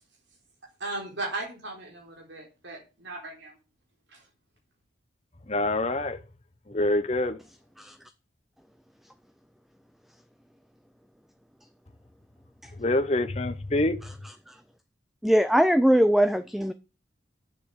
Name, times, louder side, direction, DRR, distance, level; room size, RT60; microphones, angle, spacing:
voice 1, 0.8-3.6 4.1-4.3, right 2 dB, 80° right, 4.0 m, -37 dB
voice 2, 5.5-6.2 6.7-7.4 12.8-14.0, left 2 dB, 35° left, 0.8 m, -25 dB
voice 3, 14.0-14.6 15.2-16.7, equal, ahead, 0.5 m, -22 dB
8.6 x 7.4 x 7.0 m
head